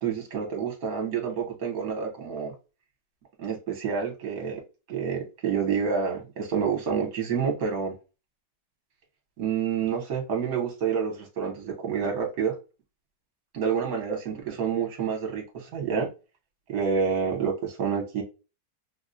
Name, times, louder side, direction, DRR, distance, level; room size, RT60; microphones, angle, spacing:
voice 1, 0.0-2.5 3.4-4.6 4.9-7.9 9.4-12.5 13.5-16.1 16.7-18.2, right 6 dB, 60° right, 1.5 m, -28 dB
3.7 x 2.3 x 2.6 m
omnidirectional pair, 1.9 m